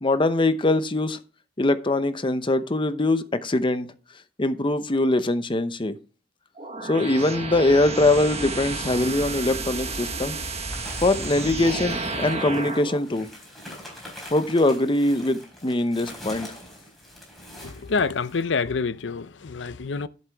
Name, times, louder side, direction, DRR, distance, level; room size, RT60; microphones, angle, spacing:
voice 1, 0.0-1.2 1.6-3.9 4.4-5.9 6.8-10.4 11.0-13.3 14.3-16.5, left 2 dB, 25° left, 0.7 m, -22 dB
sound 1, 6.6-13.0, right 3 dB, 35° right, 1.3 m, -31 dB
sound 2, 9.9-18.6, left 1 dB, ahead, 4.2 m, -44 dB
voice 2, 17.6-20.1, left 4 dB, 75° left, 0.6 m, -27 dB
11.0 x 7.3 x 3.5 m
head